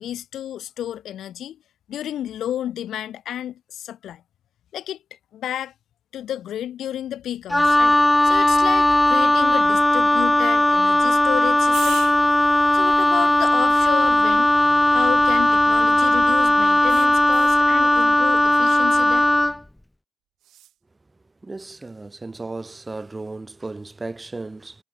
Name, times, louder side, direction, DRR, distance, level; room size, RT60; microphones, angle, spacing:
voice 1, 0.0-1.6 1.9-4.2 4.7-5.7 6.1-12.0 12.7-14.5 14.9-19.3, left 11 dB, 65° left, 1.4 m, -31 dB
Wind instrument woodwind instrument, 7.5-19.6, left 1 dB, 10° left, 0.3 m, -17 dB
sound 1, 11.7-16.1 16.9-17.7 20.4-20.8, right 12 dB, 70° right, 5.1 m, -42 dB
voice 2, 21.4-24.7, right 3 dB, 25° right, 1.3 m, -35 dB
hypercardioid pair, 45°, 0 cm